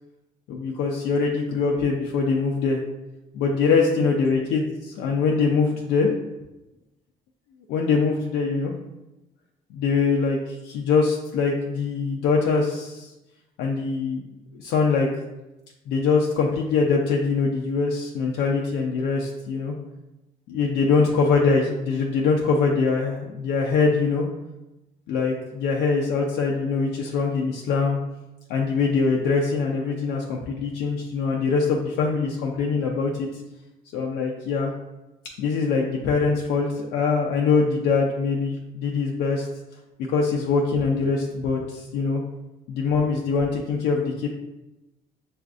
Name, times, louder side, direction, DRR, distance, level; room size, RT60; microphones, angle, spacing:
voice 1, 0.5-2.8 3.3-6.1 7.7-8.7 9.7-13.1 13.6-14.2 14.5-15.1 15.9-19.7 20.5-24.2 25.1-28.0 28.5-33.4 33.9-34.7 35.4-39.5 40.1-42.2 42.7-44.3, left 4 dB, 80° left, 0 dB, 0.5 m, -23 dB
6.3 x 2.5 x 2.4 m, 0.99 s
cardioid pair, 110°, 17 cm